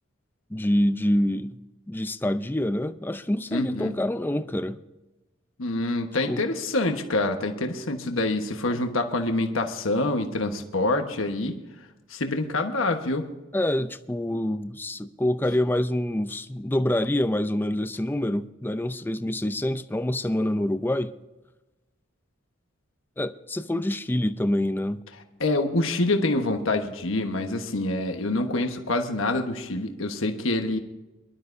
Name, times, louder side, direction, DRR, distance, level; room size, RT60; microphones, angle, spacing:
voice 1, 0.5-1.6 1.9-4.8 6.3-6.4 8.7-8.8 13.5-21.1 23.2-25.0, left 1 dB, 10° left, 0.5 m, -26 dB
voice 2, 3.5-4.0 5.6-11.6 12.1-13.3 25.4-30.8, left 2 dB, 85° left, 1.2 m, -26 dB
23.0 x 12.0 x 2.7 m
head